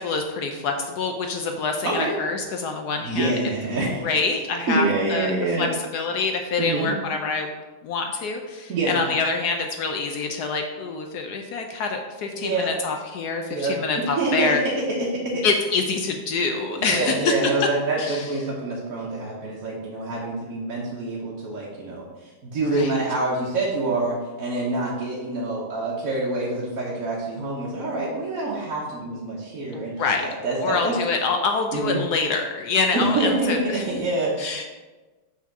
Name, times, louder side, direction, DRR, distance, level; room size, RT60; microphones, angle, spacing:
voice 1, 0.0-3.3 4.0-5.3 5.6-5.7 5.9-7.5 7.8-14.6 15.4-17.3 17.6-17.7 18.0-18.3 22.7-22.9 29.7-30.2 30.6-33.8 34.4-34.6, left 4 dB, 70° left, 4 dB, 0.9 m, -26 dB
voice 2, 1.8-2.1 3.0-4.2 4.7-5.7 6.6-6.9 8.7-9.0 12.4-12.7 13.5-13.7 14.2-15.4 16.7-29.9 30.2-30.9 31.7-32.0 32.9-34.6, right 2 dB, 50° right, -5 dB, 1.3 m, -26 dB
5.7 x 4.4 x 6.0 m, 1.2 s
omnidirectional pair, 2.3 m